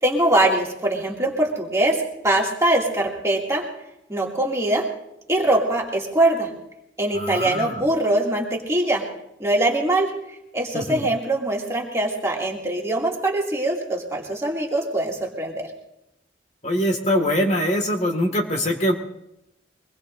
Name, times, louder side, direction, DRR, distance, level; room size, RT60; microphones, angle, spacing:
voice 1, 0.0-3.7 4.1-4.9 5.3-6.5 7.0-9.1 9.4-10.2 10.5-15.7, right 1 dB, 15° right, -2 dB, 2.5 m, -22 dB
voice 2, 7.1-7.8 10.7-11.1 16.6-18.9, equal, 40° left, 2 dB, 2.0 m, -23 dB
24.0 x 20.5 x 2.6 m, 0.85 s
head